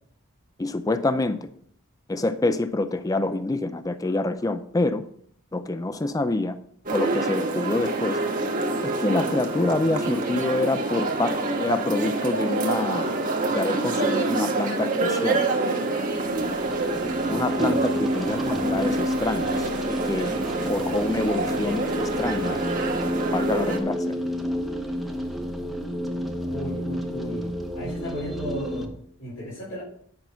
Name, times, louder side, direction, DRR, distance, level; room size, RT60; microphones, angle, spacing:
voice 1, 0.6-1.5 2.1-5.0 5.5-6.6 6.9-8.2 8.8-13.1 13.5-15.4 17.3-20.3 20.6-22.6 23.3-24.1, left 2 dB, 15° left, 11 dB, 0.4 m, -26 dB
sound 1, 6.9-23.8, right 2 dB, 40° right, 1.4 m, -27 dB
sound 2, 16.1-28.9, equal, ahead, 1.0 m, -30 dB
voice 2, 18.3-18.7 26.5-28.9 29.2-29.8, equal, 80° left, -9 dB, 5.0 m, -35 dB
10.5 x 6.0 x 5.6 m, 0.63 s
head